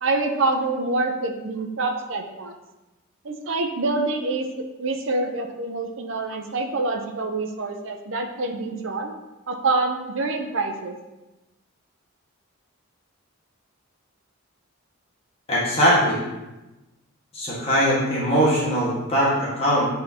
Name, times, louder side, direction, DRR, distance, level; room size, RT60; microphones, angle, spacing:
voice 1, 0.0-2.5 3.2-4.5 4.8-9.1 9.5-11.0, right 3 dB, 65° right, 4 dB, 0.6 m, -26 dB
voice 2, 15.5-16.2 17.3-19.9, equal, 30° left, -7 dB, 1.5 m, -21 dB
8.7 x 4.3 x 2.8 m, 1.0 s
head